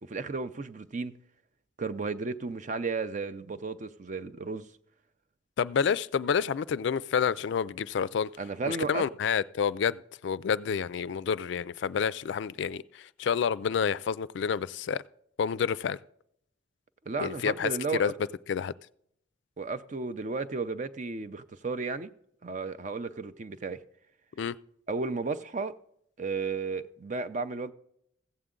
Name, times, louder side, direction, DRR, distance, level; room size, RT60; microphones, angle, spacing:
voice 1, 0.1-1.2 1.8-4.7 8.4-9.0 17.1-18.1 19.6-22.1 22.4-23.8 24.9-25.7 26.2-27.7, right 4 dB, 40° right, 0.5 m, -33 dB
voice 2, 5.6-8.3 8.7-15.0 15.4-16.0 17.2-17.7 18.0-18.1 18.5-18.7 24.4-24.6, left 7 dB, 65° left, 0.3 m, -29 dB
15.0 x 8.1 x 3.7 m
head